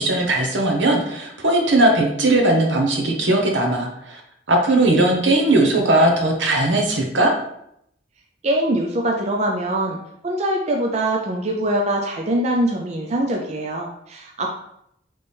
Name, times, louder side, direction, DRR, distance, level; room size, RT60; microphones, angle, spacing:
voice 1, 0.0-4.2 4.5-7.3, right 2 dB, 75° right, 1 dB, 0.9 m, -18 dB
voice 2, 8.4-10.0 10.2-14.5, right 1 dB, 35° right, 1 dB, 0.4 m, -23 dB
4.2 x 3.3 x 3.4 m, 0.75 s
head